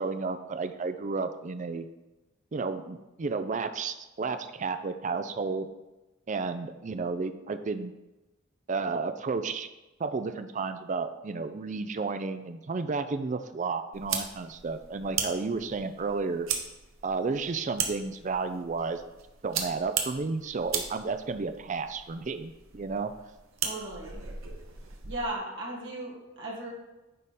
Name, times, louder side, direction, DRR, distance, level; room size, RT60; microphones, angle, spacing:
voice 1, 0.0-1.9 2.5-5.7 6.3-7.9 8.7-9.7 10.0-16.5 17.0-19.0 19.4-23.1, right 4 dB, 35° right, 10 dB, 0.4 m, -32 dB
sound 1, 13.9-25.3, right 7 dB, 80° right, 0.9 m, -37 dB
voice 2, 23.6-24.2 25.0-26.7, right 2 dB, 65° right, -3 dB, 1.8 m, -36 dB
9.4 x 3.6 x 4.1 m, 1.0 s
head